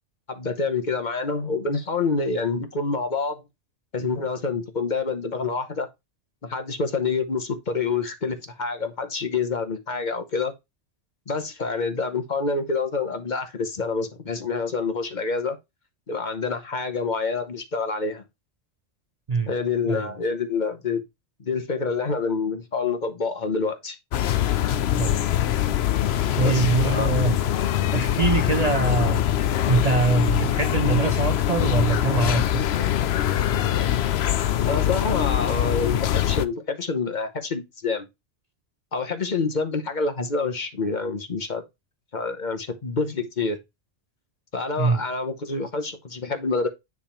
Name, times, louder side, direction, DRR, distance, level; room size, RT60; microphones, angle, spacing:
voice 1, 0.3-3.4 3.9-5.9 6.4-10.5 11.3-15.6 16.1-18.2 19.5-21.0 21.4-24.0 26.2-27.1 34.6-38.1 38.9-41.6 42.1-43.6 44.5-46.7, left 4 dB, 45° left, 1.0 m, -27 dB
sound 1, 24.1-36.5, left 11 dB, 70° left, 0.8 m, -23 dB
voice 2, 26.4-27.4 27.9-29.2 29.7-32.6 44.8-45.0, right 4 dB, 45° right, 0.6 m, -23 dB
9.5 x 3.6 x 4.3 m
omnidirectional pair, 1.2 m